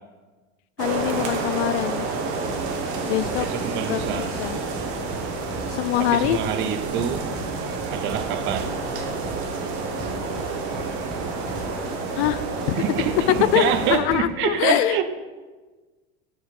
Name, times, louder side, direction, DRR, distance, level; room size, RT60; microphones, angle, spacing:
voice 1, 0.8-2.1 3.1-3.5 3.9-4.6 5.7-6.4 12.1-12.8 13.5-15.0, left 13 dB, 85° left, 0.5 m, -24 dB
sound 1, 0.8-14.0, right 4 dB, 80° right, 1.5 m, -29 dB
sound 2, 2.5-14.5, right 1 dB, ahead, 1.2 m, -39 dB
voice 2, 3.4-4.3 6.0-7.3 7.9-8.7 12.8-15.0, right 9 dB, 40° right, 0.5 m, -26 dB
6.6 x 6.6 x 4.8 m
supercardioid pair, 160°, 32 cm